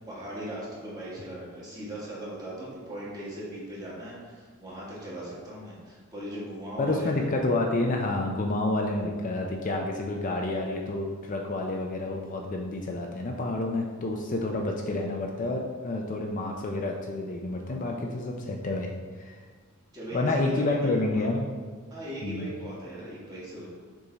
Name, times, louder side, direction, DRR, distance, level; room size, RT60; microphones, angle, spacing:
voice 1, 0.1-7.3 19.9-21.2 21.9-23.7, right 1 dB, 20° right, -7 dB, 1.8 m, -38 dB
voice 2, 6.8-18.9 19.2-19.4 20.1-21.5 22.2-22.5, left 2 dB, 35° left, 1 dB, 0.5 m, -29 dB
6.8 x 3.7 x 4.0 m, 1.5 s
head